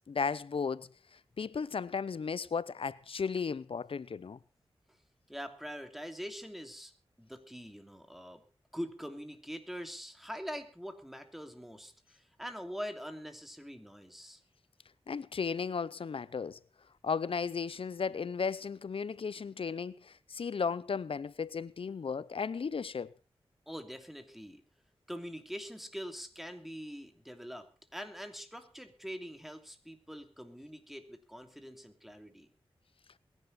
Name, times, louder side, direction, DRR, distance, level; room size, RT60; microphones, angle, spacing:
voice 1, 0.1-0.9 1.4-4.4 15.1-16.6 17.0-23.1, left 5 dB, 70° left, 0.6 m, -35 dB
voice 2, 5.3-6.9 7.2-8.4 8.7-14.4 23.7-24.6 25.1-32.5, equal, ahead, 3.0 m, -44 dB
22.5 x 11.0 x 4.2 m
cardioid pair, 50°, 10 cm